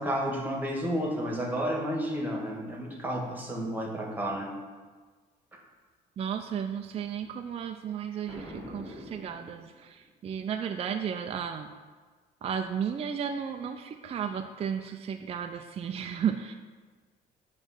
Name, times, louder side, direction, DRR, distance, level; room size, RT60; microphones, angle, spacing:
voice 1, 0.0-4.5, equal, 10° right, 0 dB, 1.7 m, -31 dB
voice 2, 6.2-11.7 12.4-16.5, right 8 dB, 35° right, 5 dB, 0.4 m, -34 dB
Boom, 8.3-10.1, equal, 20° left, 2.3 m, -44 dB
8.8 x 3.2 x 6.4 m, 1.4 s
cardioid pair, 110°, 17 cm